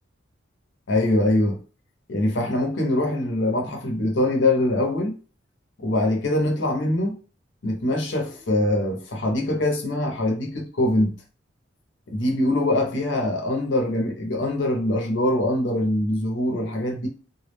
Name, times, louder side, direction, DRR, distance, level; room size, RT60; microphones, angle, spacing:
voice 1, 0.9-1.6 2.1-5.1 5.8-7.2 7.6-11.2 12.1-17.1, left 1 dB, 65° left, 0.7 m, -23 dB
2.2 x 2.0 x 3.2 m
head